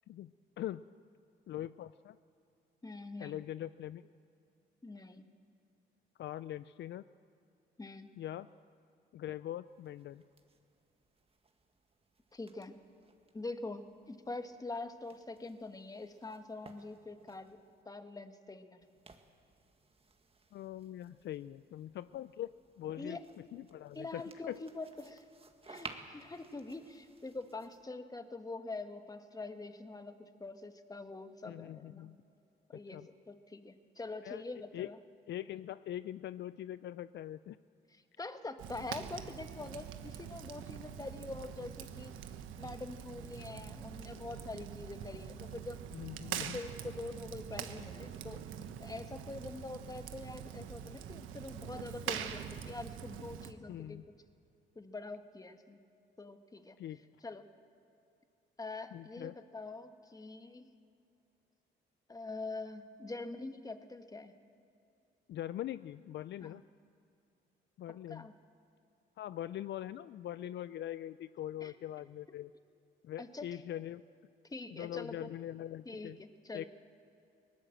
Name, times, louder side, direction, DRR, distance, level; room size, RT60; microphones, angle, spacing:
voice 1, 1.5-2.2 3.2-4.0 6.2-7.0 8.2-8.5 9.1-10.2 20.5-22.5 22.8-24.6 31.4-32.2 32.9-33.1 34.2-34.4 34.7-34.9 35.3-37.6 45.9-46.6 53.7-54.0 56.8-57.0 58.9-59.4 65.3-66.6 67.8-68.3 69.2-72.5 73.0-74.0 74.7-76.2 76.5-76.6, left 12 dB, 65° left, 15 dB, 0.4 m, -42 dB
voice 2, 2.8-3.4 4.8-5.3 7.8-8.1 12.3-12.8 13.3-17.6 17.8-18.8 23.0-23.2 23.9-25.3 25.7-32.1 32.7-33.0 33.3-35.0 37.9-42.1 42.6-45.9 46.4-48.4 48.8-54.0 54.7-55.8 56.2-56.8 57.2-57.5 58.6-60.7 62.1-64.3 66.4-66.6 68.1-68.3 71.6-71.7 73.2-73.5 74.5-75.3 75.8-76.7, left 3 dB, 20° left, 8 dB, 1.4 m, -44 dB
sound 1, 9.7-17.8 18.8-27.9, right 4 dB, 30° right, 1.8 m, -57 dB
Fire, 38.6-53.5, right 9 dB, 85° right, 1.2 m, -44 dB
20.0 x 19.0 x 7.7 m, 2.6 s
cardioid pair, 90°, 20 cm